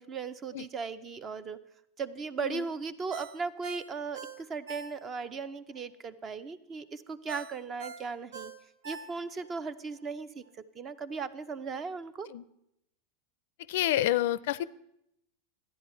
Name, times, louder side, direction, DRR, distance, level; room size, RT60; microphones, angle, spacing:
voice 1, 0.0-1.6 2.0-8.5 8.8-12.3, right 5 dB, 30° right, 14 dB, 0.7 m, -37 dB
Ringtone, 3.1-5.3 5.7-5.8 7.3-9.5 9.9-10.0, right 6 dB, 85° right, 0.9 m, -43 dB
voice 2, 13.7-14.6, left 13 dB, 70° left, 18 dB, 0.4 m, -28 dB
13.0 x 10.0 x 4.5 m, 0.79 s
hypercardioid pair, 115°, 0 cm